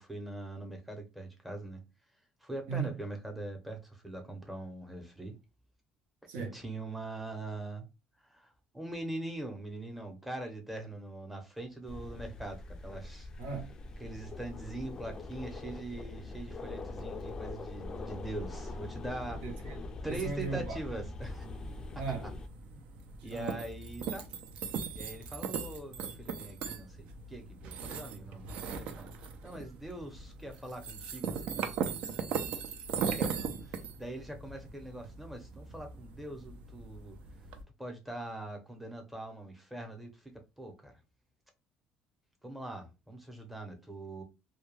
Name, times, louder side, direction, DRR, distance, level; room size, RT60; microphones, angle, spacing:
voice 1, 0.0-1.8 2.4-5.4 6.4-7.9 8.3-13.3 14.0-19.4 20.0-21.5 23.2-24.2 24.9-29.1 29.4-31.9 32.9-37.2 37.8-40.9 42.4-44.2, right 2 dB, 5° right, 0.7 m, -42 dB
voice 2, 2.7-3.0 6.3-6.6 13.4-13.8 19.4-20.8 22.0-22.3 23.2-23.6, right 5 dB, 80° right, 0.8 m, -37 dB
sound 1, 11.8-22.5, left 2 dB, 30° left, 0.3 m, -43 dB
sound 2, 21.2-37.6, right 6 dB, 65° right, 0.4 m, -39 dB
2.2 x 2.1 x 3.1 m
cardioid pair, 130°, 2 cm